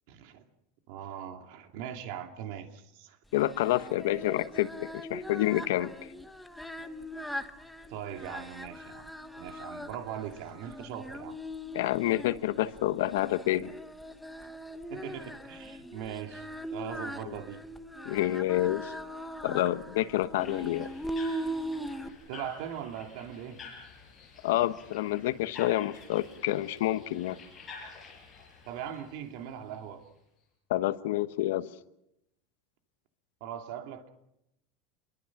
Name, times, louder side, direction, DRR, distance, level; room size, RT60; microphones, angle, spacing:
voice 1, 0.1-0.4 0.9-3.2 7.9-11.4 14.9-17.6 22.3-23.6 28.7-30.1 33.4-34.1, right 9 dB, 60° right, 6 dB, 2.6 m, -40 dB
voice 2, 3.3-5.9 11.7-13.7 17.2-17.4 18.0-18.9 19.4-20.9 24.4-27.4 30.7-31.7, left 14 dB, 85° left, 12 dB, 1.2 m, -28 dB
Singing, 3.3-22.1, equal, ahead, 1.1 m, -40 dB
sound 1, 20.4-30.1, left 5 dB, 20° left, 6.0 m, -50 dB
28.5 x 22.5 x 6.0 m, 0.81 s
supercardioid pair, 165°, 0 cm